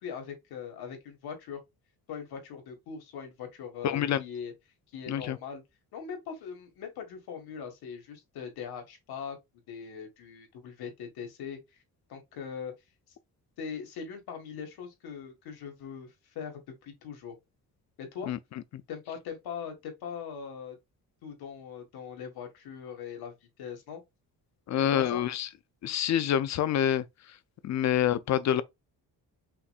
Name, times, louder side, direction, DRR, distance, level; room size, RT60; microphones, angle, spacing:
voice 1, 0.0-1.6 2.1-4.5 4.9-5.6 5.9-9.4 9.7-11.8 12.1-12.7 13.6-17.4 18.0-18.3 18.9-20.8 21.2-24.0 24.8-25.2, left 7 dB, 90° left, 1.9 m, -41 dB
voice 2, 3.8-4.2 5.1-5.4 18.3-18.8 24.7-25.5 25.8-27.4 27.6-28.6, left 10 dB, 50° left, 0.5 m, -27 dB
5.7 x 3.1 x 2.4 m
cardioid pair, 155°, 37 cm